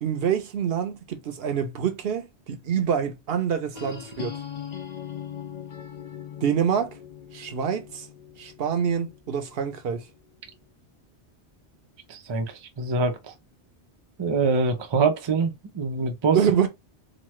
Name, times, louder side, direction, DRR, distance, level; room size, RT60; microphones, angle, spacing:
voice 1, 0.0-4.4 6.4-7.0 7.3-8.1 8.4-10.1 16.3-16.7, right 8 dB, 65° right, 0.8 m, -26 dB
sound 1, 3.7-9.5, left 9 dB, 55° left, 0.5 m, -40 dB
voice 2, 12.1-13.2 14.2-16.4, right 4 dB, 40° right, 0.4 m, -24 dB
3.0 x 2.1 x 2.9 m
omnidirectional pair, 1.2 m